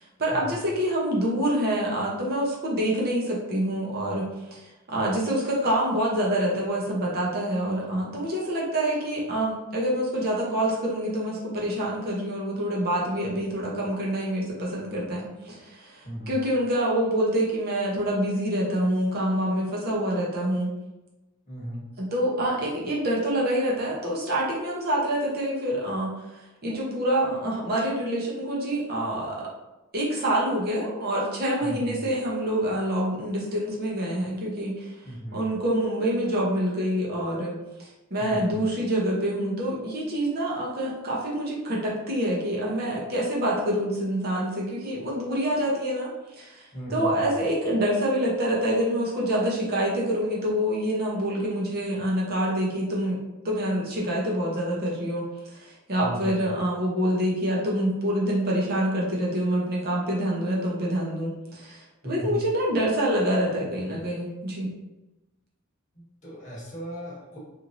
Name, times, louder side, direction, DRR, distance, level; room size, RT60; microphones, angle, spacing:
voice 1, 0.2-20.7 22.0-29.5 29.9-34.9 35.3-53.2 53.4-64.7, right 1 dB, 45° right, -5 dB, 0.7 m, -26 dB
voice 2, 16.0-16.3 21.5-21.8 31.6-31.9 35.0-35.4 38.2-38.6 46.7-47.3 56.0-56.4 62.0-62.4 66.2-67.4, equal, 35° left, -6 dB, 1.0 m, -36 dB
3.0 x 2.6 x 2.5 m, 1.0 s
head